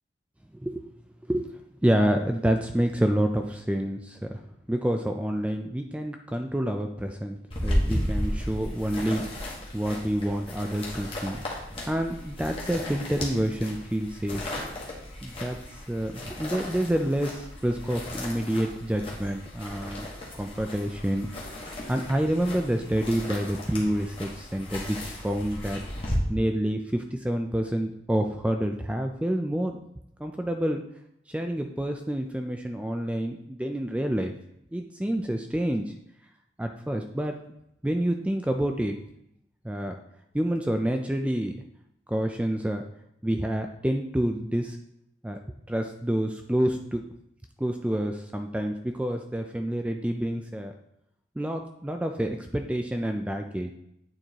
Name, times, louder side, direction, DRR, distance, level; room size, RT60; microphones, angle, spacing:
voice 1, 1.8-4.4 4.7-7.4 7.6-11.4 11.9-14.4 15.2-20.1 20.4-21.3 21.9-25.8 26.3-29.8 30.2-30.8 31.3-34.3 34.7-35.9 36.6-37.4 37.8-39.0 39.6-40.0 40.3-41.5 42.1-42.8 43.2-44.8 45.2-45.4 45.7-47.0 47.6-50.7 51.4-53.7, right 1 dB, 5° right, 5 dB, 0.3 m, -28 dB
sound 1, 7.5-26.2, left 1 dB, 30° left, 1.3 m, -35 dB
9.0 x 4.5 x 2.8 m, 0.77 s
head